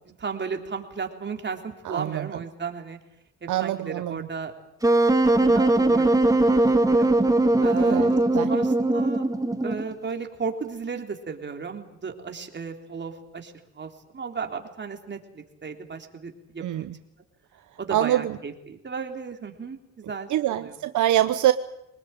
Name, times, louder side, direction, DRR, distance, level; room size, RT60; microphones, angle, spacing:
voice 1, 0.1-3.0 3.4-4.5 5.3-7.1 7.6-9.3 9.6-16.9 17.8-20.7, right 5 dB, 35° right, 4 dB, 3.6 m, -35 dB
voice 2, 1.8-2.3 3.5-4.3 7.7-8.5 16.6-16.9 17.9-18.4 20.3-21.5, right 13 dB, 75° right, 10 dB, 1.0 m, -25 dB
Wind instrument woodwind instrument, 4.8-9.9, right 2 dB, 10° right, 2.0 m, -20 dB
23.5 x 20.0 x 9.2 m, 0.82 s
cardioid pair, 90°, 30 cm